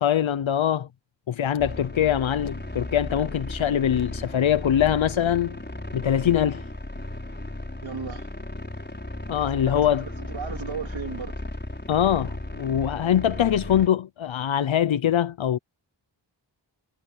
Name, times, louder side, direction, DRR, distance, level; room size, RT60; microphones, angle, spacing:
voice 1, 0.0-0.9 1.3-5.6 5.9-6.6 9.3-10.1 11.9-15.6, left 10 dB, 90° left, 0.7 m, -23 dB
sound 1, 1.6-13.9, left 1 dB, 25° left, 5.8 m, -35 dB
voice 2, 7.8-8.3 9.7-11.4, right 5 dB, 80° right, 2.8 m, -35 dB
wide cardioid pair, 50°, 46 cm